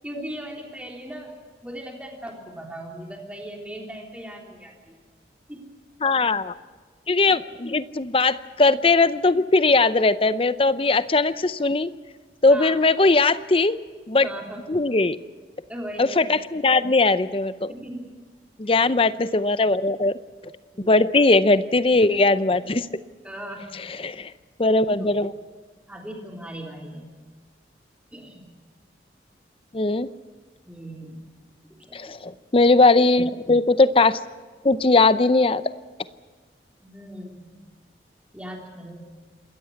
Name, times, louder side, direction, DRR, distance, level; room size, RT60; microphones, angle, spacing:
voice 1, 0.0-1.4 1.6-5.0 5.5-5.7 7.2-7.3 12.5-12.8 14.2-14.7 15.7-16.4 17.7-18.1 18.9-19.1 20.7-21.1 22.8-22.9 23.2-23.8 25.0-25.1 25.9-27.1 28.1-28.5 30.6-31.2 31.7-32.2 36.8-37.5 38.3-39.1, right 1 dB, 5° right, 0 dB, 3.4 m, -38 dB
voice 2, 6.0-6.5 7.1-11.9 12.4-13.8 14.1-14.3 14.7-15.2 16.0-17.7 18.6-20.2 20.8-22.9 24.0-24.3 24.6-25.3 29.7-30.1 31.9-34.2 34.6-35.6, left 3 dB, 30° left, 14 dB, 0.6 m, -19 dB
27.0 x 14.0 x 8.5 m, 1.4 s
head